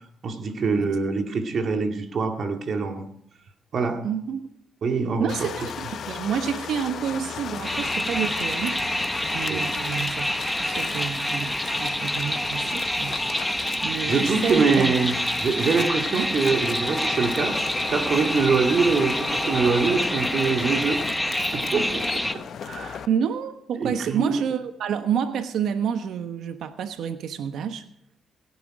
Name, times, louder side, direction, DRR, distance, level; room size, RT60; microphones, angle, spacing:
voice 1, 0.2-3.0 3.7-4.1 4.8-5.3 9.5-9.7 14.1-15.1 15.4-17.6 17.9-21.0 21.5-23.0 23.8-24.4, right 4 dB, 55° right, 5 dB, 2.1 m, -24 dB
voice 2, 4.0-4.5 5.2-8.8 9.3-10.3 10.6-13.2 13.8-14.9 16.1-16.3 23.1-27.8, right 8 dB, 75° right, 8 dB, 1.2 m, -29 dB
sound 1, 5.3-23.1, left 8 dB, 60° left, 0.9 m, -36 dB
sound 2, 7.6-22.3, equal, 5° left, 1.0 m, -27 dB
17.0 x 11.0 x 4.9 m, 0.69 s
cardioid pair, 90°, 0 cm